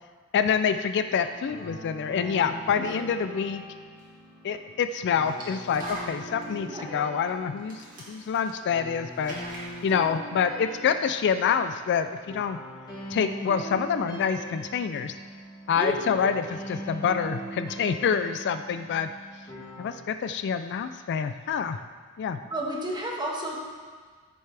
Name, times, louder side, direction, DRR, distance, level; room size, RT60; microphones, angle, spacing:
voice 1, 0.3-3.6 4.4-9.4 9.8-12.6 13.1-15.1 15.7-19.1 19.8-21.8 22.2-22.4, left 7 dB, 50° left, 10 dB, 0.3 m, -27 dB
sound 1, 1.0-19.9, right 1 dB, 20° left, 3.0 m, -41 dB
sound 2, 4.0-4.1 5.2-6.5 7.3-7.4 7.6-8.8 9.1-10.0, right 1 dB, 40° right, 2.2 m, -42 dB
voice 2, 15.8-16.2 22.5-23.7, equal, 20° right, -2 dB, 1.4 m, -31 dB
13.5 x 6.6 x 3.4 m, 1.5 s
head